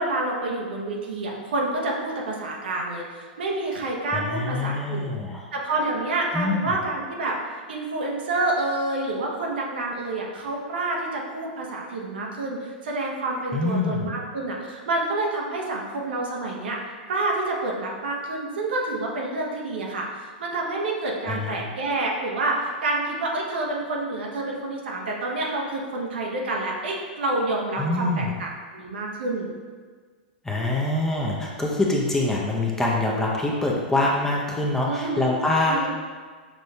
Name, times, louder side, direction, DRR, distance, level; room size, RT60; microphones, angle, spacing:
voice 1, 0.0-5.1 5.5-7.4 7.7-16.8 17.1-29.5 34.8-35.3 35.6-35.9, right 2 dB, 75° right, -1 dB, 1.0 m, -28 dB
voice 2, 4.1-5.4 6.3-6.8 13.5-14.2 21.2-21.6 27.8-28.3 30.4-35.9, left 2 dB, 10° left, -3 dB, 0.7 m, -25 dB
6.2 x 2.5 x 3.3 m, 1.5 s
hypercardioid pair, 105°, 5 cm